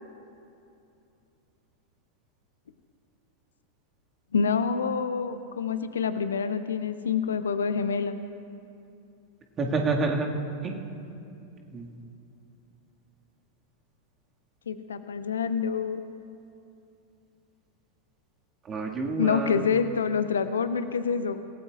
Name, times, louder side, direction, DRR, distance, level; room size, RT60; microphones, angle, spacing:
voice 1, 4.3-8.2 14.7-16.0 19.2-21.4, left 6 dB, 70° left, 11 dB, 0.7 m, -27 dB
voice 2, 9.6-10.3 10.6-10.7 11.7-11.9 18.7-19.7, right 3 dB, 25° right, 1 dB, 1.9 m, -28 dB
27.0 x 17.0 x 2.4 m, 2.7 s
figure-of-eight pair, 90°, 0 cm